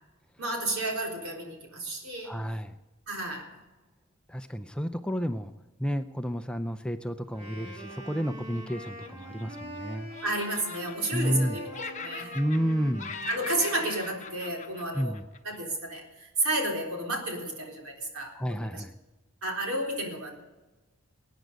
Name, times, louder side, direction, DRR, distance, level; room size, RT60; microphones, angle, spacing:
voice 1, 0.4-2.4 3.1-3.5 10.2-12.4 13.3-15.2 15.4-18.8 19.4-20.3, right 1 dB, 75° right, 0 dB, 3.8 m, -32 dB
voice 2, 2.3-2.8 4.3-5.5 5.8-10.1 11.1-11.6 12.3-13.1 14.9-15.2 18.3-18.9, equal, 5° left, 7 dB, 0.5 m, -31 dB
Wind instrument woodwind instrument, 7.3-15.0, equal, 30° right, 2.8 m, -44 dB
Laughter, 8.5-9.8 10.1-11.5 11.7-12.7 13.0-15.6, left 5 dB, 35° left, 0.9 m, -42 dB
21.0 x 9.3 x 5.3 m, 1.1 s
head